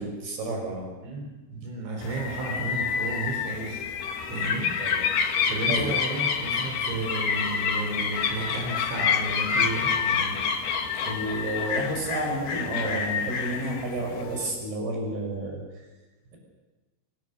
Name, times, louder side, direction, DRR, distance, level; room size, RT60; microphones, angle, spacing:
voice 1, 0.0-0.9 4.8-5.0 5.3-5.9 11.1-15.6, right 1 dB, 60° right, 2 dB, 7.9 m, -31 dB
voice 2, 1.0-3.8 4.3-10.4, right 2 dB, 85° right, 0 dB, 6.0 m, -33 dB
sound 1, 2.0-14.5, left 6 dB, 55° left, 2.9 m, -28 dB
25.0 x 23.5 x 6.6 m, 1.2 s
omnidirectional pair, 5.1 m